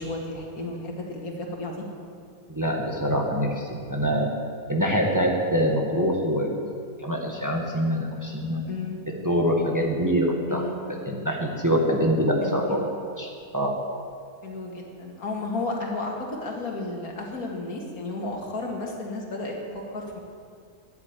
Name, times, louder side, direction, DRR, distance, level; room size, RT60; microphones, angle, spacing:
voice 1, 0.0-1.8 8.7-9.0 10.5-10.7 12.4-12.8 14.4-20.2, left 2 dB, 80° left, 0 dB, 2.4 m, -33 dB
voice 2, 2.5-4.3 4.7-6.6 7.0-8.7 9.2-10.6 11.1-12.8 13.2-13.7, equal, 15° right, 0 dB, 1.3 m, -24 dB
10.5 x 9.6 x 8.9 m, 2.3 s
omnidirectional pair, 1.5 m